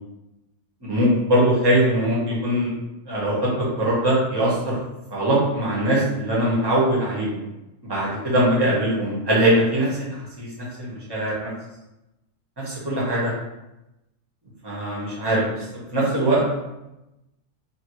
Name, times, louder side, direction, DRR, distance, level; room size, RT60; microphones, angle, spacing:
voice 1, 0.8-2.7 3.1-4.8 5.1-7.4 7.8-10.5 10.8-11.5 12.6-13.3 14.6-15.6 15.9-16.5, right 1 dB, 20° right, -6 dB, 0.9 m, -21 dB
2.8 x 2.6 x 3.0 m, 0.95 s
omnidirectional pair, 1.4 m